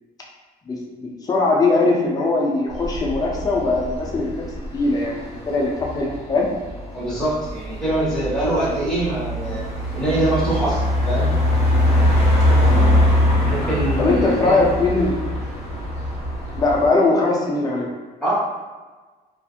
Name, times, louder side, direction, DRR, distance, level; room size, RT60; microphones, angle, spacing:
voice 1, 0.7-4.4 4.7-6.5 12.6-13.0 14.0-15.1 16.5-17.9, left 3 dB, 20° left, -2 dB, 0.5 m, -20 dB
sound 1, 2.7-16.9, left 1 dB, 35° left, 1.0 m, -22 dB
voice 2, 6.9-9.6 9.9-11.3 13.4-14.6 18.2-18.3, right 1 dB, 5° left, -12 dB, 1.3 m, -23 dB
2.6 x 2.4 x 2.4 m, 1.3 s
cardioid pair, 110°, 17 cm